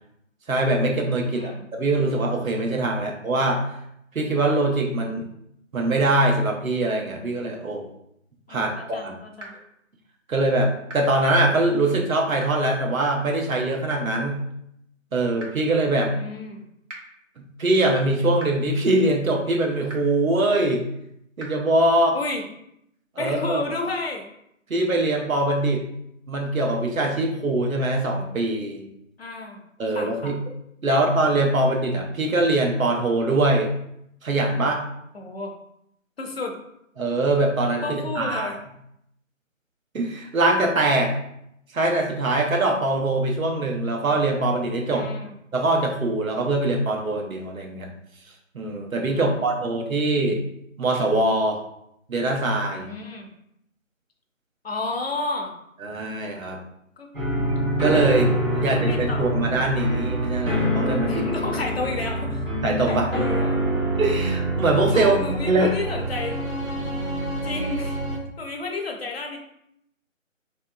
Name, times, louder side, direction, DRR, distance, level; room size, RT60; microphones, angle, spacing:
voice 1, 0.5-3.6 4.1-5.3 5.7-7.9 8.5-8.7 9.0-9.1 10.3-14.4 15.1-16.1 17.4-20.8 21.4-22.2 23.2-23.6 24.7-25.8 26.3-28.9 29.8-30.4 30.8-33.7 34.2-34.8 37.0-38.5 39.9-41.1 41.7-45.1 45.5-47.9 48.5-50.4 50.8-51.6 52.1-52.9 55.8-56.6 57.8-61.3 62.6-63.1 64.0-65.7, right 2 dB, 85° right, 1 dB, 0.8 m, -23 dB
voice 2, 1.2-1.6 8.5-9.6 16.1-16.7 22.1-22.4 23.2-24.3 29.2-29.6 29.9-30.3 30.9-31.0 35.1-35.5 36.2-36.5 37.8-38.6 44.9-45.3 49.1-50.0 52.8-53.3 54.6-55.5 57.0-57.1 58.5-59.7 61.1-62.4 62.9-63.6 64.9-66.4 67.4-68.0 68.4-69.4, left 3 dB, 50° left, 2 dB, 0.6 m, -32 dB
sound 1, 9.4-9.5 10.9-11.0 12.4-12.5 13.9-14.0 15.4-15.5 16.9-17.0 18.4-18.5 19.9-20.0 21.4-21.5, right 1 dB, 60° right, 1.0 m, -38 dB
sound 2, 57.1-68.2, right 1 dB, 40° right, 0.7 m, -26 dB
3.2 x 2.7 x 2.2 m, 0.76 s
figure-of-eight pair, 160°, 40 cm